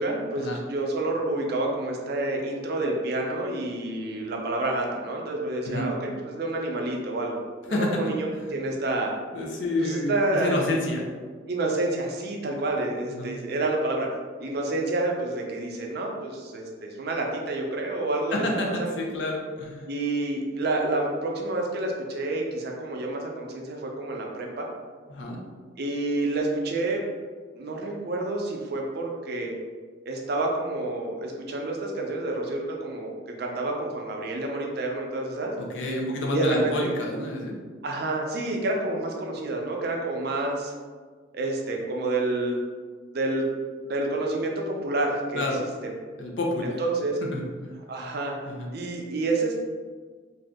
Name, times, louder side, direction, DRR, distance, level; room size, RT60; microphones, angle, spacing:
voice 1, 0.0-9.1 9.8-10.7 11.5-14.1 14.4-18.5 18.8-19.0 19.9-24.7 25.8-27.0 27.6-29.5 30.1-35.5 36.3-36.9 37.8-40.7 41.3-42.6 43.1-43.5 43.8-45.9 46.6-47.2 47.9-48.3 48.7-49.6, right 2 dB, 55° right, 0 dB, 0.5 m, -29 dB
voice 2, 7.7-8.0 9.3-11.0 13.1-13.3 18.3-19.9 25.1-25.4 35.6-37.6 45.3-45.6 46.2-46.8 47.3-47.7 48.5-48.7, left 1 dB, 70° left, -1 dB, 0.6 m, -29 dB
2.6 x 2.4 x 3.5 m, 1.5 s
head